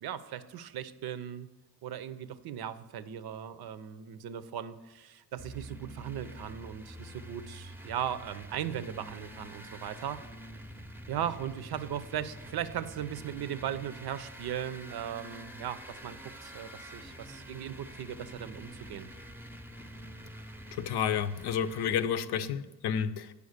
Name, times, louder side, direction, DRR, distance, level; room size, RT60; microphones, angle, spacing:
voice 1, 0.0-1.5 1.8-10.2 11.1-19.1, right 10 dB, 70° right, 13 dB, 0.6 m, -38 dB
sound 1, 5.4-22.1, right 1 dB, 5° right, 0.6 m, -47 dB
voice 2, 20.7-23.3, left 8 dB, 80° left, 12 dB, 0.6 m, -30 dB
8.4 x 5.1 x 6.5 m, 1.1 s
cardioid pair, 75°, 39 cm